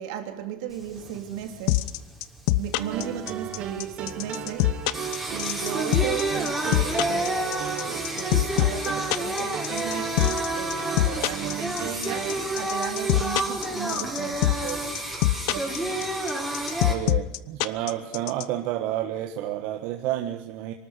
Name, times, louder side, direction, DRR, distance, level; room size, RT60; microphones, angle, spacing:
voice 1, 0.0-1.9 2.5-15.0 15.5-16.0, right 9 dB, 85° right, 3.3 m, -36 dB
Singing, 0.7-17.0, right 1 dB, 5° right, 5.0 m, -30 dB
sound 1, 1.7-18.4, left 18 dB, 75° left, 0.9 m, -23 dB
sound 2, 2.8-12.4, right 9 dB, 40° right, 2.3 m, -35 dB
voice 2, 16.8-20.7, right 12 dB, 65° right, 1.6 m, -30 dB
24.0 x 13.5 x 9.8 m
cardioid pair, 135°, 3 cm